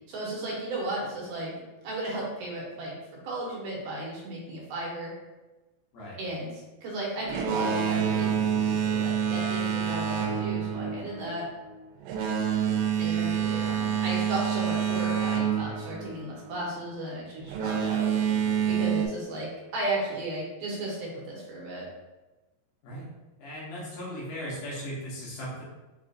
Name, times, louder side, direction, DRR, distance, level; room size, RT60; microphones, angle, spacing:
voice 1, 0.1-1.5 1.8-2.9 3.2-5.1 6.2-11.4 13.0-18.1 18.7-21.9, right 1 dB, 70° right, -5 dB, 2.3 m, -35 dB
Boat Water vehicle, 7.2-16.7 17.4-19.1, right 8 dB, 90° right, 2.4 m, -27 dB
voice 2, 23.4-25.6, equal, 75° left, -6 dB, 2.8 m, -37 dB
6.2 x 2.4 x 2.6 m, 1.1 s
omnidirectional pair, 4.2 m